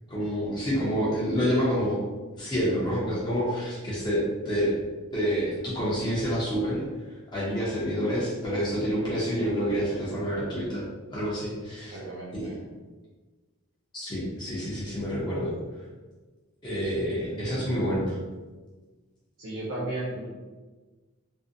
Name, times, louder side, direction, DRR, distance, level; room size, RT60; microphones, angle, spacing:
voice 1, 0.1-2.0 2.4-4.7 5.1-6.8 7.3-10.9 11.1-12.0 12.3-12.4 13.9-15.5 16.6-18.2, equal, 20° left, -8 dB, 0.6 m, -28 dB
voice 2, 11.8-12.6 17.3-17.6 19.4-20.3, right 2 dB, 65° right, -8 dB, 0.5 m, -35 dB
2.5 x 2.0 x 2.5 m, 1.3 s
head